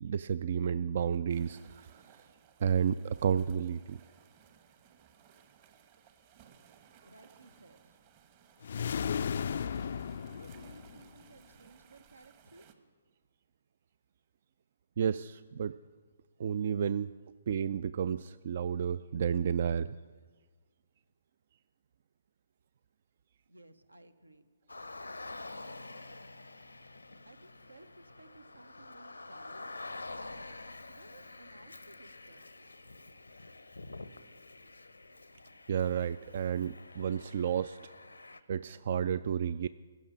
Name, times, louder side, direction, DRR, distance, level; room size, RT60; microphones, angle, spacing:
voice 1, 0.0-1.9 2.6-4.0 15.0-15.7 16.4-17.1 17.5-19.9 35.7-37.8 38.5-39.7, right 8 dB, 50° right, 15 dB, 0.3 m, -31 dB
sound 1, 1.3-12.7, right 8 dB, 35° right, 1.1 m, -61 dB
voice 2, 7.0-8.0 10.3-12.7 23.5-24.5 27.2-30.0 30.9-32.8, right 2 dB, 85° right, 12 dB, 1.0 m, -57 dB
sound 2, 8.6-11.2, left 7 dB, 55° left, 0.3 m, -35 dB
Car, 24.7-38.4, left 2 dB, 80° left, 0.7 m, -48 dB
15.0 x 7.1 x 9.7 m, 1.5 s
figure-of-eight pair, 130°, 0 cm